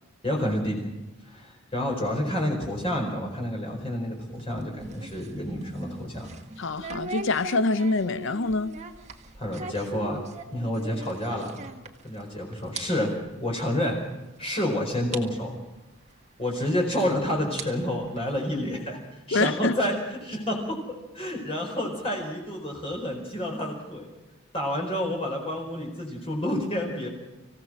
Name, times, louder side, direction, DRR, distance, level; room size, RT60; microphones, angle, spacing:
voice 1, 0.2-0.8 1.2-6.3 9.3-10.2 10.5-11.6 12.0-13.1 13.4-14.0 14.4-15.6 16.4-19.9 20.2-24.1 24.5-27.1, left 1 dB, 25° left, 4.6 m, -29 dB
sound 1, 4.3-12.3 12.5-12.8 13.1-13.3 14.0-14.1 14.6-14.7 15.1-15.2 16.6-16.7 17.4-18.8, right 3 dB, 30° right, 1.7 m, -40 dB
voice 2, 6.6-8.8 19.3-19.8, left 3 dB, 55° left, 0.6 m, -25 dB
26.0 x 16.0 x 6.3 m
head